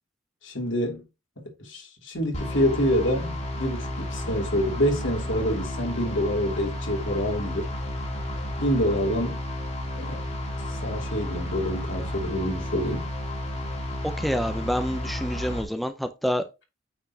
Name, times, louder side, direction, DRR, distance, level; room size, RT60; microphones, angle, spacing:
voice 1, 0.4-1.0 1.4-7.7 8.6-9.4 10.0-10.2 10.7-13.1, equal, 70° left, 2.8 m, -27 dB
sound 1, 2.3-15.6, left 1 dB, 35° left, 2.0 m, -32 dB
voice 2, 14.0-16.4, equal, ahead, 0.5 m, -27 dB
8.8 x 4.1 x 2.8 m
head